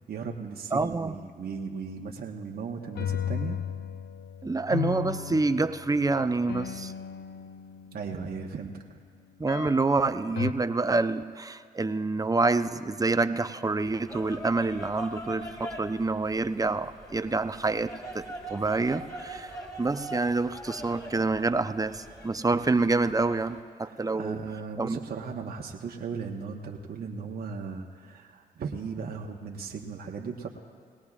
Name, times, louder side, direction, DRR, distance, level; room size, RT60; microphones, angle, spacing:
voice 1, 0.1-3.6 7.9-8.8 23.9-30.5, right 5 dB, 60° right, 0 dB, 1.2 m, -37 dB
voice 2, 0.7-1.2 4.4-6.9 9.4-24.4 24.8-25.0, right 3 dB, 20° right, 11 dB, 0.7 m, -27 dB
sound 1, 2.8-8.4 9.5-10.0 10.4-10.5, left 9 dB, 65° left, 0.6 m, -35 dB
sound 2, 13.9-23.6, right 1 dB, 20° left, 3.6 m, -42 dB
21.0 x 17.5 x 2.5 m, 2.2 s
supercardioid pair, 55°, 18 cm